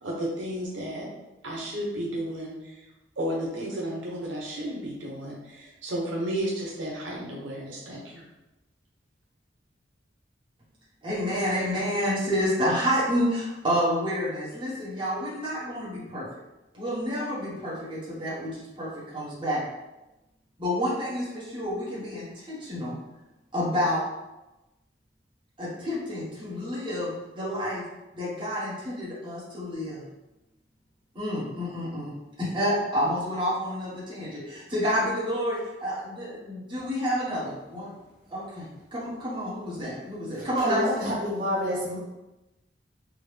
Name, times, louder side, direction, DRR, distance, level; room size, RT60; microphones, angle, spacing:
voice 1, 0.0-1.1 1.4-2.9 3.2-8.3, right 1 dB, 90° right, -4 dB, 0.8 m, -33 dB
voice 2, 11.0-16.3 16.7-19.6 20.6-23.0 23.5-24.0 25.6-27.8 28.1-30.0 31.1-37.9 38.3-41.1, equal, 25° right, -9 dB, 1.2 m, -29 dB
voice 3, 40.4-42.0, left 1 dB, 50° right, -6 dB, 0.9 m, -28 dB
3.6 x 2.2 x 3.3 m, 1.0 s
head